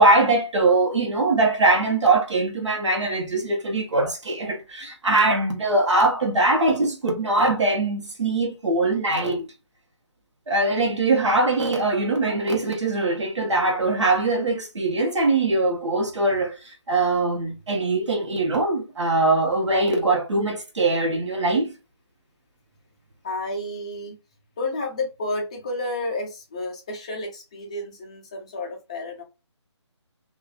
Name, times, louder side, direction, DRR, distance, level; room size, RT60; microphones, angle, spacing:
voice 1, 0.0-9.5 10.5-21.7, right 2 dB, 75° right, 1.0 m, -22 dB
voice 2, 23.2-24.2 24.6-29.2, left 2 dB, 15° left, 0.4 m, -31 dB
2.9 x 2.3 x 2.3 m
figure-of-eight pair, 160°, 15 cm